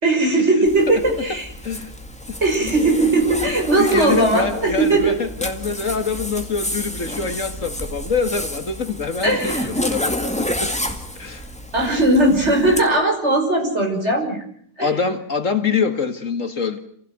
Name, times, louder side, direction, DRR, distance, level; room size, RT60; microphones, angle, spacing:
voice 1, 0.0-1.5 2.4-5.1 9.2-9.7 11.7-14.4 14.8-14.9, right 2 dB, 45° right, 6.4 m, -18 dB
Zipper (clothing), 0.6-12.8, equal, 5° left, 2.0 m, -30 dB
voice 2, 3.8-10.7 11.2-11.5 14.8-16.8, left 5 dB, 55° left, 2.1 m, -25 dB
27.5 x 16.5 x 9.4 m
omnidirectional pair, 1.7 m